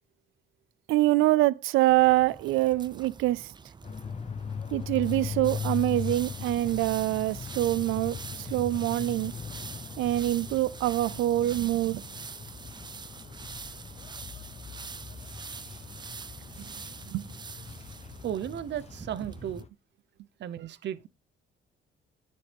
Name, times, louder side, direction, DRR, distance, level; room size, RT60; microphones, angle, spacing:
voice 1, 0.9-3.5 4.7-9.4 10.0-12.0 16.6-16.7 17.1-17.2, right 16 dB, 90° right, 0.4 m, -25 dB
sound 1, 1.8-19.6, right 5 dB, 20° right, 0.4 m, -45 dB
sound 2, 3.8-19.7, left 6 dB, 30° left, 0.6 m, -40 dB
voice 2, 18.2-19.7 20.4-21.1, right 10 dB, 65° right, 0.8 m, -35 dB
10.0 x 7.7 x 3.4 m
cardioid pair, 90°, 20 cm